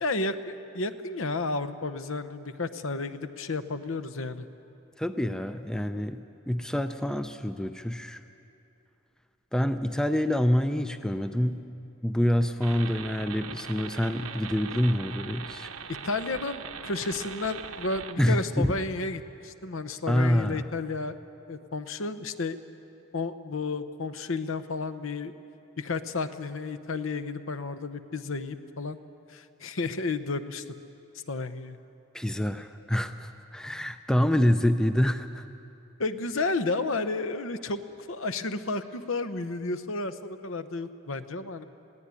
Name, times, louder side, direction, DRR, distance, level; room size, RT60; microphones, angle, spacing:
voice 1, 0.0-4.5 16.0-21.1 21.5-22.6 23.1-25.3 25.8-29.0 29.3-30.6 31.3-31.8 36.0-37.8 38.1-41.6, left 3 dB, 70° left, 11 dB, 0.9 m, -32 dB
voice 2, 5.0-8.2 9.5-11.6 12.0-15.7 18.2-18.7 20.1-20.6 32.1-35.5, equal, 5° left, 9 dB, 0.5 m, -26 dB
sound 1, 12.6-18.1, right 6 dB, 85° right, 1.2 m, -41 dB
22.0 x 16.0 x 9.7 m, 2.7 s
head